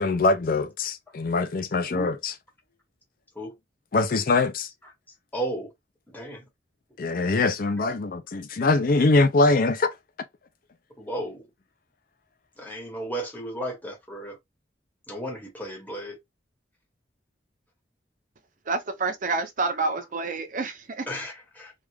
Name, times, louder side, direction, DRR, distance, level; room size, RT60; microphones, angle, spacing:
voice 1, 0.0-2.3 3.9-4.7 7.0-9.9, left 3 dB, 50° left, 0.5 m, -23 dB
voice 2, 5.3-5.7 6.1-6.5 11.0-11.5 12.6-14.4 15.1-16.2 20.0-20.1 21.1-21.7, right 1 dB, 10° left, 1.4 m, -34 dB
voice 3, 18.7-21.1, right 3 dB, 45° right, 0.6 m, -28 dB
3.4 x 2.4 x 3.2 m
head